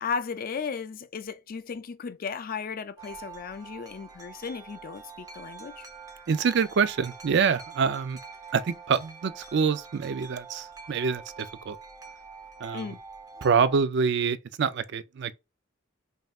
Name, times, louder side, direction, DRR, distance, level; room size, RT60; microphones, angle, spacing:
voice 1, 0.0-5.9 12.7-13.0, left 5 dB, 45° left, 0.4 m, -35 dB
Wind chime, 3.0-13.8, right 5 dB, 20° right, 0.7 m, -46 dB
voice 2, 6.3-8.2 8.5-11.8 12.6-12.9 13.4-15.3, right 6 dB, 60° right, 0.4 m, -26 dB
5.4 x 2.6 x 2.3 m
head